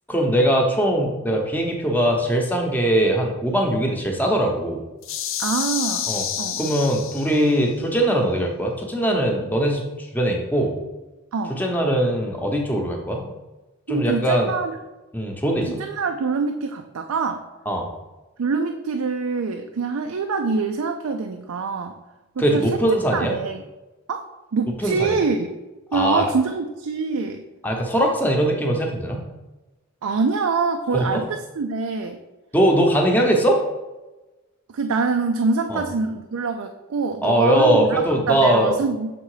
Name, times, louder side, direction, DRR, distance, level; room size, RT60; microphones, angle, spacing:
voice 1, 0.1-4.8 6.1-6.2 6.6-10.8 11.6-13.3 13.9-14.5 15.1-15.8 17.7-17.9 22.4-23.3 24.8-25.2 25.9-26.3 27.6-29.2 30.9-31.2 32.5-33.6 35.7-35.8 37.2-38.7, right 1 dB, 10° left, 1 dB, 0.8 m, -21 dB
sound 1, 5.0-7.6, left 9 dB, 65° left, 0.5 m, -28 dB
voice 2, 5.4-6.1 6.4-6.7 11.3-11.6 13.9-14.8 15.6-17.4 18.4-22.0 22.4-22.8 23.1-23.6 24.1-25.5 25.9-27.4 30.0-32.2 34.7-39.1, right 4 dB, 85° right, 5 dB, 0.4 m, -25 dB
6.9 x 3.7 x 4.8 m, 1.1 s
head